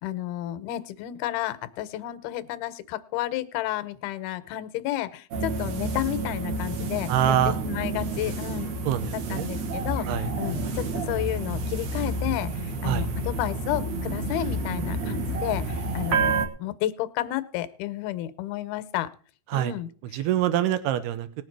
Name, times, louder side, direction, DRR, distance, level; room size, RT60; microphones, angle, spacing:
voice 1, 0.0-7.1 7.5-8.7 9.3-10.1 10.4-19.1 19.5-20.2, left 14 dB, 75° left, 14 dB, 2.6 m, -31 dB
sound 1, 5.3-16.5, right 2 dB, 55° right, 2.1 m, -29 dB
voice 2, 7.1-7.6 8.9-9.5 10.1-10.3 12.8-13.1 19.5-19.7 20.1-21.4, right 11 dB, 85° right, 12 dB, 3.0 m, -25 dB
19.0 x 7.2 x 4.6 m, 0.42 s
omnidirectional pair, 4.6 m